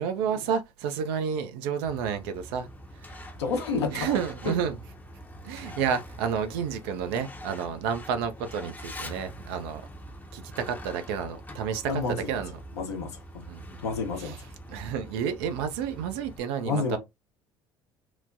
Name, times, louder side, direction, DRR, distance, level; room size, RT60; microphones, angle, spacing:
voice 1, 0.0-2.7 3.0-3.2 3.9-4.8 5.4-9.8 10.3-12.6 13.5-13.8 14.2-14.4 14.7-17.0, right 7 dB, 65° right, 0.5 m, -30 dB
Truck, 1.8-16.4, equal, 10° left, 0.7 m, -44 dB
voice 2, 3.4-4.2 11.9-12.3 12.8-13.1 13.8-14.4 16.6-17.0, left 4 dB, 80° left, 0.8 m, -29 dB
3.0 x 2.1 x 2.5 m
figure-of-eight pair, 60°, 14 cm